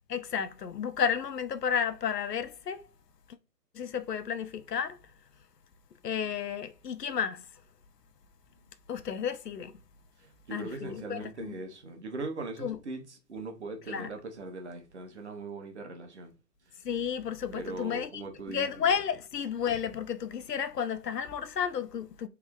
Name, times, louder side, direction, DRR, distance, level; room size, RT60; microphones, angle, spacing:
voice 1, 0.1-2.8 3.7-5.0 6.0-7.5 8.9-9.7 10.5-11.5 12.6-12.8 13.9-14.1 16.8-18.2 18.5-22.3, left 7 dB, 80° left, 0.6 m, -32 dB
voice 2, 10.2-16.3 16.7-16.9 17.5-18.9, right 3 dB, 45° right, 0.9 m, -40 dB
3.3 x 2.0 x 3.4 m
figure-of-eight pair, 140°, 48 cm